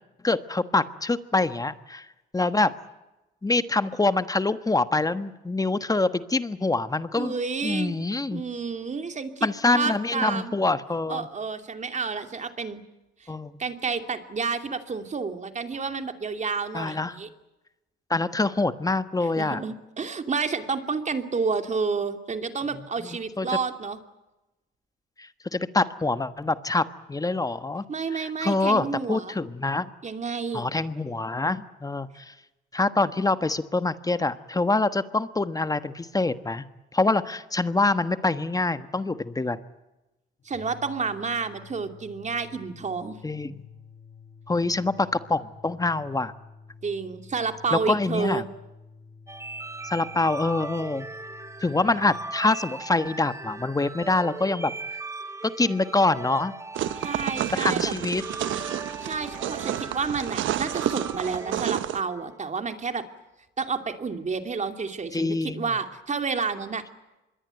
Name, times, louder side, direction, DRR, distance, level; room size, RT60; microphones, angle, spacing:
voice 1, 0.2-2.1 2.3-2.7 3.4-7.3 7.6-8.4 9.4-11.3 13.3-13.6 16.7-17.2 18.1-19.6 23.0-23.1 23.4-23.5 25.2-27.8 28.1-29.9 30.5-32.3 32.7-36.6 36.9-39.6 43.2-43.6 44.5-46.3 47.7-48.4 49.8-51.1 51.6-54.7 55.4-56.5 57.5-58.2 65.1-65.7, left 2 dB, 20° left, 12 dB, 1.3 m, -25 dB
voice 2, 7.2-8.0 8.3-9.5 9.7-10.5 11.1-12.8 13.2-13.3 13.6-17.3 19.4-24.0 27.9-29.3 30.0-30.7 40.4-43.2 46.8-48.4 57.0-57.9 59.0-63.0 63.6-66.8, right 5 dB, 35° right, 7 dB, 2.7 m, -30 dB
sound 1, 40.4-52.3, left 5 dB, 55° left, 6.9 m, -50 dB
sound 2, 49.3-62.4, right 3 dB, 15° right, 1.1 m, -39 dB
sound 3, 56.7-62.0, right 12 dB, 75° right, 1.1 m, -30 dB
26.0 x 22.0 x 9.2 m, 1.0 s
cardioid pair, 90°, 20 cm